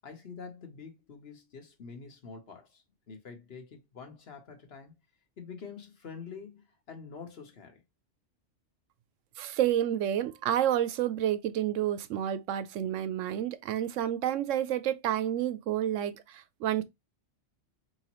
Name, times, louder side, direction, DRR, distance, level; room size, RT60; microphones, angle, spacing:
voice 1, 0.0-4.9 5.4-7.8, left 5 dB, 55° left, 1.2 m, -46 dB
voice 2, 9.4-16.8, right 11 dB, 85° right, 0.9 m, -29 dB
4.7 x 3.0 x 2.9 m
omnidirectional pair, 1.3 m